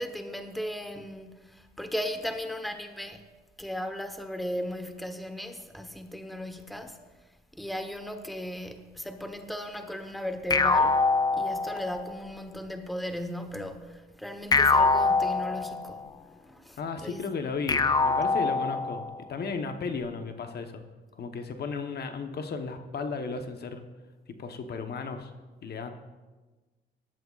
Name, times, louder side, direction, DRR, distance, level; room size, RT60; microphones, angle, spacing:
voice 1, 0.0-3.3 3.6-7.0 7.5-11.0 11.3-16.0 16.4-17.2, equal, ahead, 1.0 m, -36 dB
sound 1, 10.5-12.1 14.5-16.1 17.7-19.2, left 3 dB, 20° left, 0.4 m, -24 dB
voice 2, 16.8-20.8 21.2-23.8 24.4-25.3 25.6-25.9, left 4 dB, 55° left, 1.0 m, -34 dB
18.5 x 12.0 x 2.4 m
cardioid pair, 90°, 20 cm